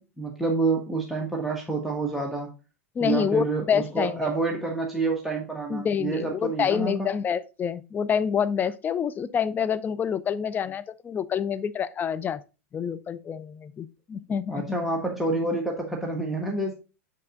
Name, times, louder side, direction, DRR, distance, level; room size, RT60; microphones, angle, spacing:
voice 1, 0.0-2.5 3.0-7.1 14.5-16.7, right 3 dB, ahead, 1.4 m, -28 dB
voice 2, 3.0-4.3 5.7-12.4 12.7-14.8, left 7 dB, 20° left, 0.5 m, -27 dB
7.6 x 5.5 x 3.7 m
hypercardioid pair, 90°, 8 cm